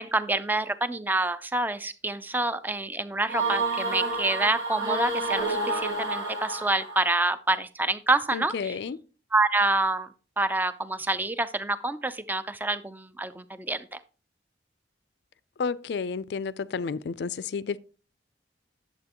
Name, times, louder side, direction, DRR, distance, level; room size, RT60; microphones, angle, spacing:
voice 1, 0.0-8.8 9.3-10.1 10.4-14.0, right 2 dB, 10° right, 0.4 m, -27 dB
sound 1, 3.3-7.1, right 2 dB, 70° right, 2.3 m, -29 dB
voice 2, 8.3-9.0 15.6-17.8, left 5 dB, 70° left, 0.4 m, -31 dB
10.5 x 7.5 x 2.9 m
head